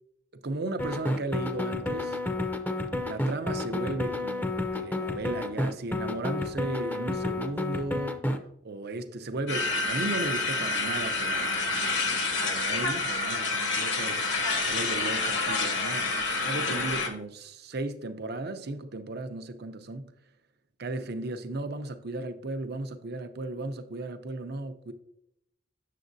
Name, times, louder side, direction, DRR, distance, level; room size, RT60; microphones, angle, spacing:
voice 1, 0.4-2.2 3.0-4.5 4.7-8.2 8.6-11.7 12.4-14.3 14.6-20.1 20.8-24.9, right 2 dB, 60° right, 0.7 m, -35 dB
sound 1, 0.8-8.4, left 2 dB, 10° left, 0.6 m, -30 dB
sound 2, 9.5-17.1, left 3 dB, 70° left, 1.4 m, -28 dB
7.5 x 7.0 x 2.6 m
head